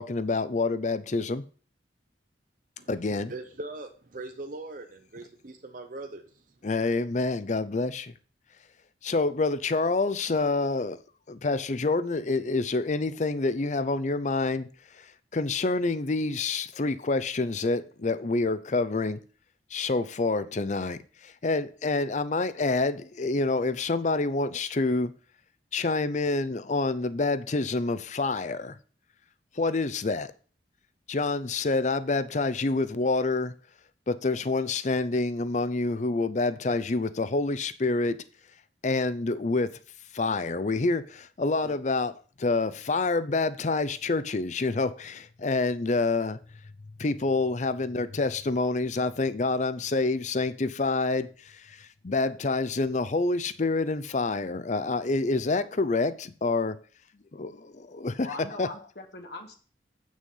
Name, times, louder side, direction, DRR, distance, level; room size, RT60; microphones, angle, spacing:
voice 1, 0.0-1.4 2.9-3.3 6.6-8.1 9.0-11.0 11.3-14.7 14.9-19.2 19.7-25.1 25.7-28.8 29.5-30.3 31.1-33.5 34.1-38.2 38.8-39.8 40.1-46.4 47.0-56.8 57.3-58.7, left 3 dB, 40° left, 0.6 m, -27 dB
voice 2, 2.8-6.5, right 2 dB, 45° right, 0.8 m, -41 dB
voice 3, 58.2-59.6, left 3 dB, 60° left, 1.3 m, -40 dB
8.3 x 6.3 x 5.5 m
head